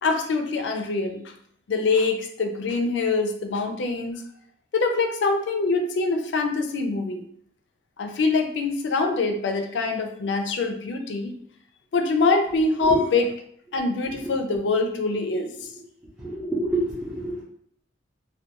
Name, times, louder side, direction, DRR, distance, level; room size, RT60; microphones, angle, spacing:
voice 1, 0.0-1.2 1.7-4.2 4.7-7.3 8.0-11.3 11.9-13.2 13.7-15.5, left 3 dB, 85° left, 5 dB, 0.4 m, -24 dB
voice 2, 14.0-14.4 15.6-15.7 16.2-17.4, right 2 dB, 10° right, -9 dB, 0.6 m, -28 dB
2.3 x 2.2 x 2.8 m, 0.66 s
head